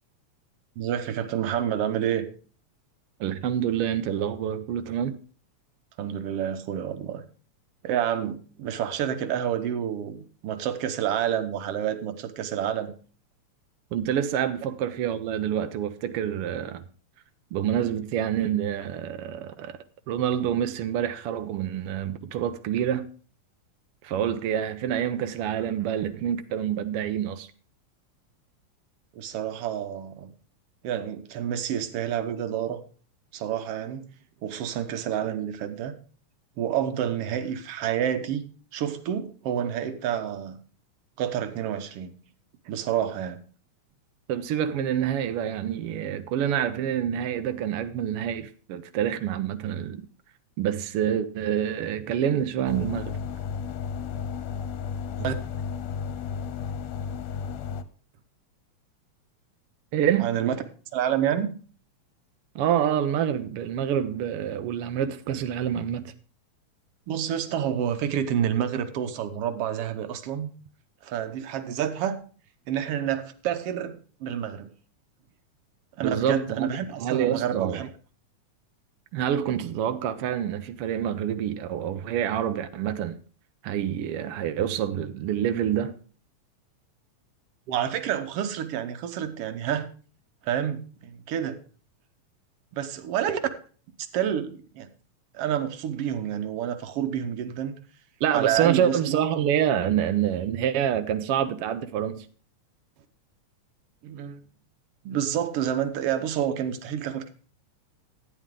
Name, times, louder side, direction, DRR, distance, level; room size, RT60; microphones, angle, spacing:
voice 1, 0.8-2.3 6.0-7.2 7.8-12.9 29.1-30.3 30.8-32.8 33.3-34.1 34.4-35.9 36.6-38.4 38.7-40.6 41.2-42.1 42.7-43.4 55.2-55.3 60.2-60.5 60.9-61.5 67.1-70.5 71.0-72.2 72.7-74.7 76.0-77.9 87.7-89.9 90.4-91.6 92.7-93.4 94.1-94.9 95.3-97.7 98.3-99.2 104.0-104.4 105.0-107.3, right 9 dB, 65° right, 1.7 m, -28 dB
voice 2, 3.2-5.2 13.9-16.8 17.5-19.8 20.1-23.1 24.0-27.5 44.3-50.0 50.6-53.2 59.9-60.3 62.5-66.1 76.0-76.7 77.0-77.9 79.1-83.2 83.6-85.9 98.2-102.3, right 9 dB, 85° right, 1.2 m, -27 dB
sound 1, 52.7-57.8, left 6 dB, 75° left, 1.9 m, -33 dB
12.5 x 9.5 x 3.7 m
omnidirectional pair, 3.3 m